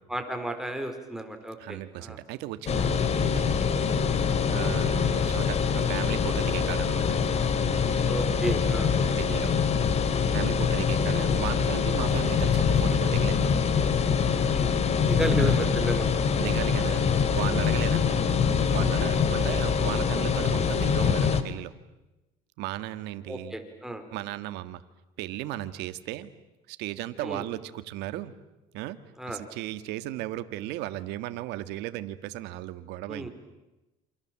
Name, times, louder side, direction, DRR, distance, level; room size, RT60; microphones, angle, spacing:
voice 1, 0.1-2.2 3.9-4.1 8.0-8.9 14.5-14.7 15.1-16.1 23.3-24.0 27.2-27.4 29.2-29.4 33.1-33.3, right 1 dB, 5° right, 5 dB, 4.3 m, -33 dB
voice 2, 1.6-3.7 4.5-7.2 9.2-9.6 10.3-13.5 15.3-15.7 16.4-18.2 18.7-21.7 22.6-23.6 24.1-24.8 25.2-26.3 26.7-28.3 28.7-29.0 29.2-33.3, right 15 dB, 80° right, 12 dB, 1.8 m, -35 dB
sound 1, 2.7-21.4, left 6 dB, 40° left, 2.3 m, -24 dB
28.5 x 27.5 x 7.5 m, 1.0 s
cardioid pair, 120°, 17 cm